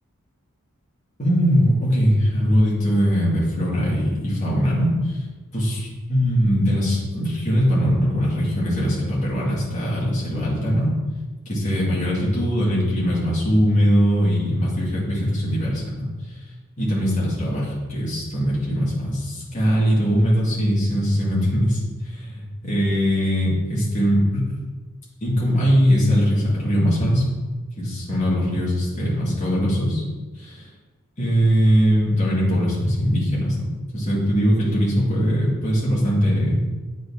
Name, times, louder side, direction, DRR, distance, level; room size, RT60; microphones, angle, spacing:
voice 1, 1.2-5.2 5.5-10.9 11.5-16.4 16.8-24.7 25.2-27.2 27.8-30.0 30.4-30.7 31.2-33.7 33.9-36.8, equal, 35° left, -7 dB, 2.0 m, -21 dB
9.1 x 4.2 x 2.8 m, 1.3 s
head